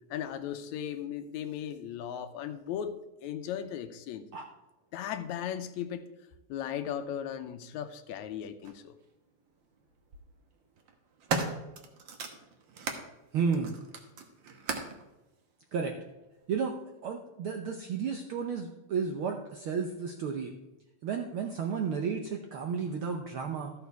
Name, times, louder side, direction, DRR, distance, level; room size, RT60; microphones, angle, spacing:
voice 1, 0.1-4.3 4.9-6.1 6.5-9.0, left 9 dB, 80° left, 9 dB, 2.0 m, -37 dB
sound 1, 8.6-8.8 9.9-10.2 10.8-13.1 13.5-15.0 15.9-16.0, right 4 dB, 55° right, 1.4 m, -36 dB
voice 2, 13.3-13.7 15.7-16.0 16.5-16.8 17.0-20.5 21.0-23.7, right 6 dB, 70° right, 3 dB, 1.2 m, -32 dB
13.5 x 6.8 x 4.6 m, 1.0 s
omnidirectional pair, 3.3 m